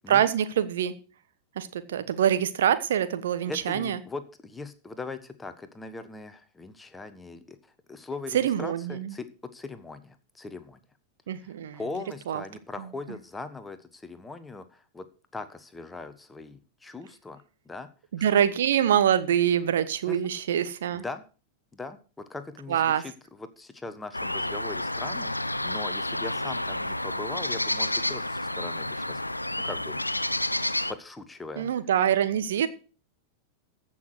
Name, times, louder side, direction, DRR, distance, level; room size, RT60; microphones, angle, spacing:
voice 1, 0.1-0.9 1.5-4.0 8.3-9.2 11.3-11.8 12.3-12.4 12.8-12.9 18.1-21.0 22.7-23.0 31.6-32.7, right 9 dB, 60° right, 12 dB, 1.2 m, -25 dB
voice 2, 3.5-10.8 11.4-15.1 15.3-17.9 20.1-20.2 20.9-21.2 21.7-30.0 30.9-31.7, left 3 dB, 10° left, 10 dB, 1.3 m, -40 dB
sound 1, 24.1-30.9, left 1 dB, 85° left, 0.6 m, -30 dB
15.0 x 6.3 x 6.4 m, 0.37 s
figure-of-eight pair, 90°, 0 cm